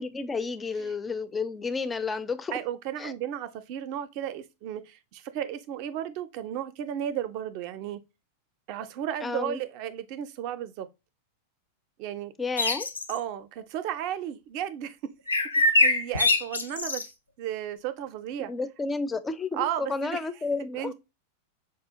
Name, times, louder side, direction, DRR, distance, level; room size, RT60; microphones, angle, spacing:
voice 1, 0.0-2.6 3.0-3.1 9.2-9.6 12.4-12.9 18.5-20.9, left 4 dB, 15° left, 0.4 m, -31 dB
voice 2, 2.5-8.0 8.7-10.9 12.0-12.3 13.1-15.1 15.5-17.1 17.4-18.5 19.5-20.2 20.7-20.9, right 10 dB, 45° right, 0.4 m, -34 dB
sound 1, 12.6-13.2 15.3-17.1, left 2 dB, 80° left, 0.4 m, -23 dB
4.8 x 2.3 x 2.6 m
figure-of-eight pair, 90°, 0 cm